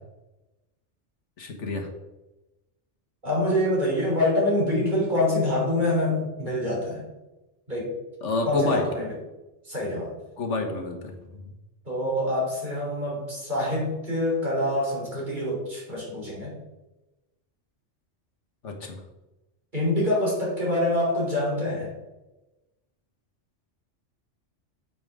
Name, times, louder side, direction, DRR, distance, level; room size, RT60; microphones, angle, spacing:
voice 1, 1.4-1.9 8.2-8.9 10.4-11.5 18.6-19.0, left 2 dB, 80° left, 3 dB, 1.6 m, -29 dB
voice 2, 3.2-7.0 7.7-7.9 8.5-9.2 9.7-10.1 11.9-16.5 19.7-21.9, left 1 dB, 40° right, -4 dB, 3.8 m, -25 dB
8.8 x 8.1 x 3.7 m, 1.0 s
omnidirectional pair, 1.2 m